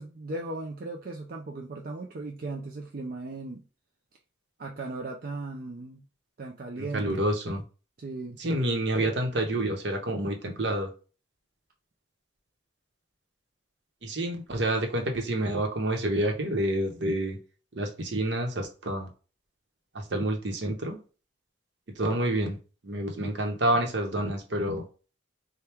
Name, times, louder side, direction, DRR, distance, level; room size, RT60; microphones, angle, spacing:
voice 1, 0.0-3.6 4.6-6.0 6.4-7.3 8.0-8.4, right 2 dB, 50° right, 0.4 m, -37 dB
voice 2, 6.8-7.6 8.4-10.9 14.0-17.4 17.7-19.1 19.9-21.0 22.0-22.6 22.8-24.8, right 1 dB, 70° right, 0.9 m, -28 dB
3.4 x 2.2 x 4.4 m
head